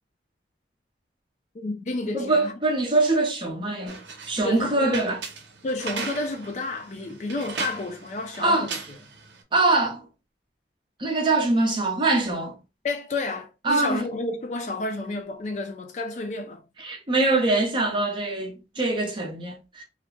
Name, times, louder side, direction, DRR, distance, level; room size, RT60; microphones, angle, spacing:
voice 1, 1.5-2.5 4.4-5.0 5.6-8.8 12.8-16.6, left 2 dB, 40° left, 0.4 m, -31 dB
voice 2, 2.1-4.0 4.3-5.2 8.4-8.7 9.5-10.0 11.0-12.5 13.6-14.1 16.8-19.8, right 2 dB, 30° right, 0.6 m, -23 dB
sound 1, 3.9-9.4, right 5 dB, 85° right, 0.6 m, -38 dB
2.4 x 2.1 x 3.0 m
head